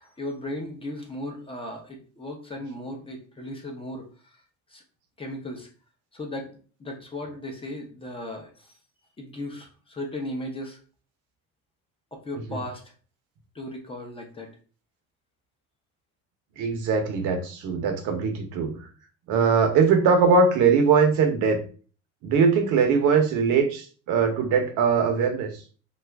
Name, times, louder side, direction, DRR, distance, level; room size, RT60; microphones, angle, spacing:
voice 1, 0.0-4.0 4.7-4.8 5.2-5.7 6.1-8.7 9.2-10.8 12.2-12.8 13.5-14.5, left 1 dB, 15° left, 2 dB, 0.6 m, -36 dB
voice 2, 16.6-18.9 19.3-21.6 22.2-25.5, right 5 dB, 65° right, 5 dB, 0.8 m, -21 dB
2.8 x 2.5 x 3.3 m, 0.39 s
cardioid pair, 145°, 32 cm